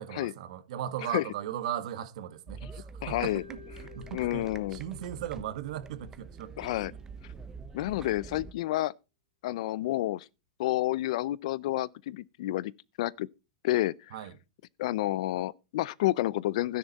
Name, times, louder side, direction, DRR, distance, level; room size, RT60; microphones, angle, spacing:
voice 1, 0.0-7.0 14.1-14.3, right 10 dB, 65° right, 1.5 m, -38 dB
sound 1, 2.5-8.5, right 4 dB, 15° right, 0.9 m, -46 dB
voice 2, 3.0-3.4 4.1-4.8 6.6-6.9 7.7-8.9 9.4-10.3 10.6-12.7 13.0-13.3 13.6-14.1 14.8-16.8, left 15 dB, 65° left, 0.5 m, -29 dB
Mallet percussion, 3.3-7.4, left 10 dB, 85° right, 5.8 m, -54 dB
12.5 x 10.0 x 4.1 m
supercardioid pair, 140°, 4 cm